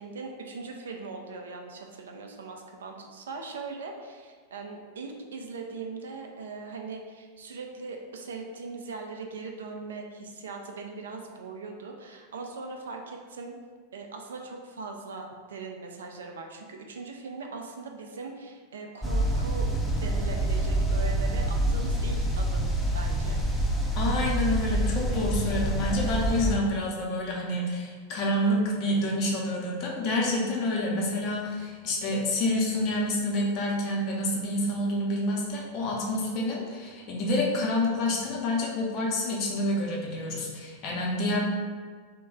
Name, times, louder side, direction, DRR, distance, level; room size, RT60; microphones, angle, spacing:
voice 1, 0.0-13.6 13.9-19.7 20.0-22.7 22.9-23.4, right 4 dB, 65° right, 2 dB, 0.4 m, -40 dB
sound 1, 19.0-26.6, right 1 dB, ahead, 0.5 m, -27 dB
voice 2, 23.9-41.4, left 1 dB, 40° left, -2 dB, 0.7 m, -28 dB
3.0 x 2.2 x 3.6 m, 1.5 s
figure-of-eight pair, 90°, 0 cm